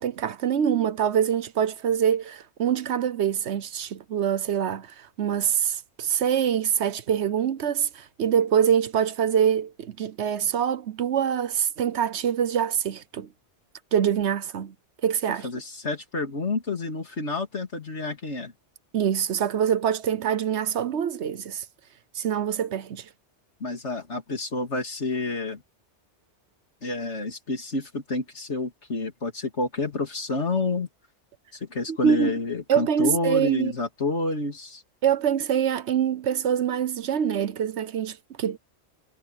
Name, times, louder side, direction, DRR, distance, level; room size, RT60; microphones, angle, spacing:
voice 1, 0.0-13.3 13.9-14.7 15.0-15.5 18.9-21.6 22.1-23.1 31.9-32.3 32.7-33.7 35.0-38.6, right 8 dB, 70° right, 1.1 m, -25 dB
voice 2, 15.4-18.5 23.6-25.6 26.8-30.9 31.7-34.8, left 2 dB, 75° left, 3.0 m, -29 dB
omnidirectional pair, 1.2 m